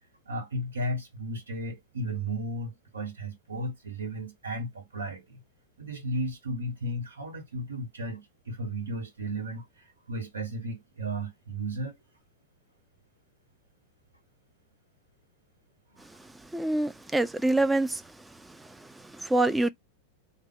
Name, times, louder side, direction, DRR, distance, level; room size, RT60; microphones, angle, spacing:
voice 1, 0.2-5.4 5.8-9.6 10.1-12.0, right 1 dB, 75° right, 1.0 m, -34 dB
voice 2, 16.5-18.0 18.4-19.7, right 2 dB, 5° right, 0.4 m, -26 dB
3.3 x 2.1 x 3.5 m
figure-of-eight pair, 90°, 0 cm